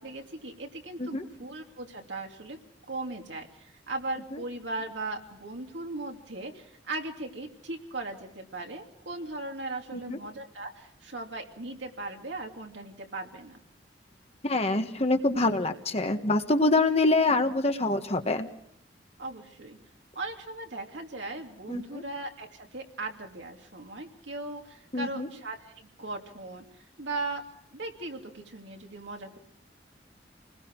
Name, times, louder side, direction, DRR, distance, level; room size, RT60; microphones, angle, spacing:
voice 1, 0.0-2.6 2.9-13.6 19.2-19.8 20.1-27.4 27.7-29.4, right 2 dB, 75° right, 2 dB, 2.8 m, -38 dB
voice 2, 14.4-18.5 21.7-22.0 24.9-25.3, left 2 dB, 35° left, 6 dB, 1.5 m, -25 dB
29.0 x 20.5 x 4.8 m, 0.67 s
head